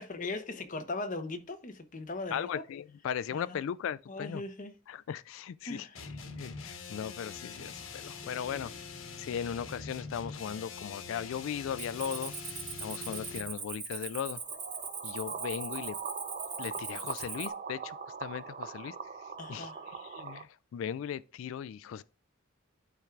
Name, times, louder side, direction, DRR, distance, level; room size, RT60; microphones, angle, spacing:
voice 1, 0.0-2.6 3.3-3.6 4.1-4.7 5.6-6.0 8.3-8.7 19.4-19.9, left 2 dB, 40° left, 0.9 m, -39 dB
voice 2, 2.3-4.4 4.9-8.7 9.2-14.4 15.0-16.0 16.6-19.0 19.5-22.0, left 8 dB, 75° left, 0.3 m, -38 dB
sound 1, 5.9-13.6, left 4 dB, 90° left, 1.3 m, -44 dB
Cricket, 11.8-17.5, right 5 dB, 25° right, 1.0 m, -41 dB
sound 2, 14.4-20.4, right 5 dB, 40° right, 0.6 m, -41 dB
12.0 x 4.5 x 2.4 m
head